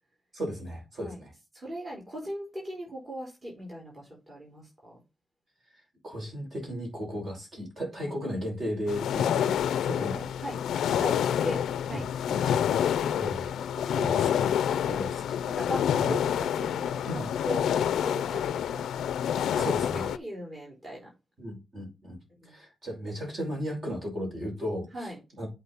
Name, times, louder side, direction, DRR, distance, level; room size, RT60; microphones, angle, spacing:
voice 1, 0.3-1.3 5.7-10.3 11.9-12.4 13.2-15.4 16.0-16.2 17.1-17.3 19.6-20.1 21.4-22.2 22.4-25.1 25.4-25.5, equal, 45° right, 5.4 m, -36 dB
voice 2, 1.5-5.0 8.0-8.1 10.4-10.6 11.0-12.1 14.8-15.0 15.4-18.8 19.4-19.7 20.0-21.1 22.4-22.5 24.9-25.2, equal, 25° right, 4.1 m, -39 dB
sound 1, 8.9-20.2, left 9 dB, 85° left, 0.5 m, -28 dB
8.4 x 4.9 x 4.0 m
cardioid pair, 125°, 0 cm